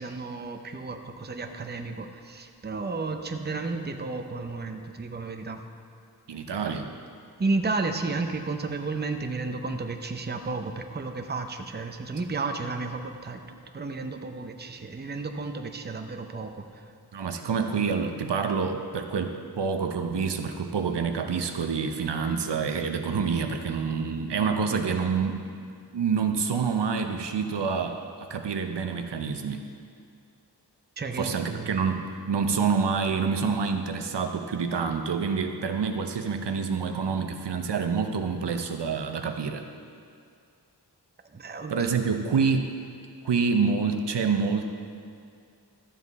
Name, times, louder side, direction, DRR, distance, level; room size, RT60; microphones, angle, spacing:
voice 1, 0.0-5.6 7.4-16.8 31.0-31.7 41.3-41.9, right 3 dB, 25° right, 6 dB, 0.6 m, -32 dB
voice 2, 6.3-6.9 17.1-25.4 25.9-29.6 31.2-39.6 41.7-42.7 43.2-44.6, right 5 dB, 80° right, 6 dB, 0.7 m, -27 dB
12.5 x 7.4 x 4.1 m, 2.3 s
wide cardioid pair, 75°, 41 cm